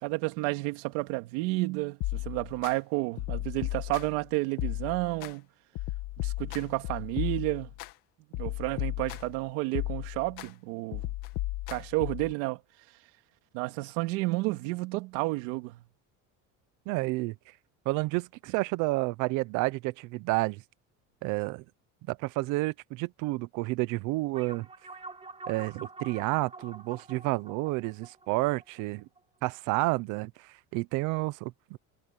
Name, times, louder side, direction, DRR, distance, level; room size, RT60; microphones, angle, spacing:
voice 1, 0.0-5.5 6.2-7.7 8.4-11.1 11.7-12.6 13.5-15.8, right 22 dB, 80° right, 2.5 m, -31 dB
sound 1, 2.0-2.7 3.2-4.2 4.6-5.3 5.8-7.9 8.3-9.4 9.7-10.5 10.9-12.3, left 17 dB, 55° left, 2.3 m, -35 dB
voice 2, 16.9-17.3 17.9-20.6 21.2-21.6 22.1-24.7 25.5-29.1 29.4-31.8, right 22 dB, 55° right, 0.8 m, -30 dB
sound 2, 24.3-29.2, right 3 dB, 15° right, 2.5 m, -46 dB
cardioid pair, 175°, 36 cm